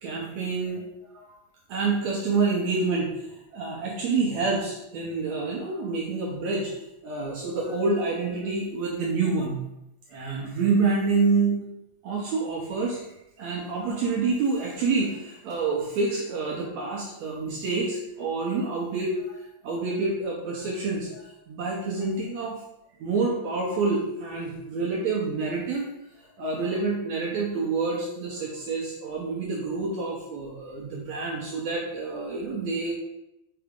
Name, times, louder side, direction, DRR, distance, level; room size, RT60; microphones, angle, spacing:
voice 1, 0.0-0.9 1.1-1.3 1.7-3.3 3.5-6.7 7.0-9.6 10.1-11.6 12.0-13.0 13.4-22.6 23.0-25.8 26.4-32.9, right 4 dB, 75° right, -3 dB, 1.6 m, -27 dB
5.7 x 4.8 x 3.6 m, 0.84 s
omnidirectional pair, 4.4 m